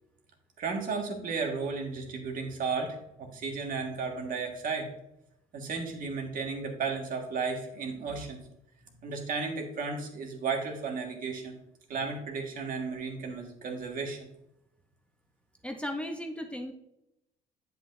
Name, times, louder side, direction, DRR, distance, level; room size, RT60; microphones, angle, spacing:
voice 1, 0.6-4.9 5.5-8.4 9.0-11.6 11.9-14.2, right 4 dB, 55° right, 2 dB, 1.7 m, -34 dB
voice 2, 15.6-16.7, left 1 dB, 5° left, 4 dB, 0.7 m, -36 dB
8.1 x 7.5 x 2.6 m, 0.84 s
cardioid pair, 110°, 17 cm